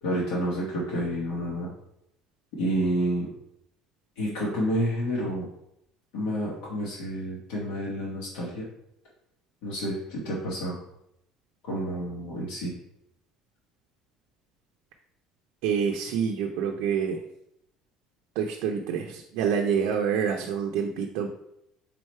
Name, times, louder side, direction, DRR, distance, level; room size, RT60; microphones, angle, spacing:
voice 1, 0.0-1.7 2.6-3.3 4.2-5.5 6.1-8.6 9.6-10.8 11.6-12.7, equal, 85° left, -6 dB, 1.5 m, -29 dB
voice 2, 15.6-17.2 18.4-21.3, right 7 dB, 80° right, 2 dB, 0.4 m, -27 dB
3.8 x 3.2 x 4.4 m, 0.78 s
cardioid pair, 130°, 0 cm